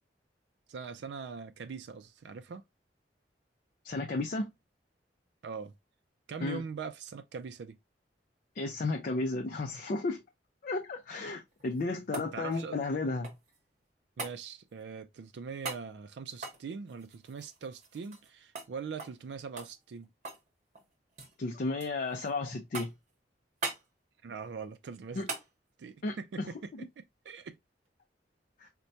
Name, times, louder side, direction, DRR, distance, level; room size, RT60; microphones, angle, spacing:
voice 1, 0.7-2.6 5.4-5.7 6.3-7.8 12.3-12.8 14.2-20.1 24.2-25.3 25.8-27.6, right 5 dB, 75° right, 0.4 m, -42 dB
voice 2, 3.8-4.5 6.4-6.6 8.6-10.2 10.6-13.3 21.4-22.9 25.1-25.3 26.0-26.5 26.7-26.8 28.6-28.7, left 3 dB, 50° left, 0.5 m, -33 dB
sound 1, 11.5-13.6 14.2-14.4 15.6-15.9 16.3-18.3 18.5-18.7 19.0-19.2 19.6-20.5 20.7-21.3 21.8-22.3 22.7-23.1 23.6-23.9 25.3-25.5 27.8-27.9, right 3 dB, 45° right, 0.9 m, -41 dB
4.3 x 2.2 x 2.6 m
head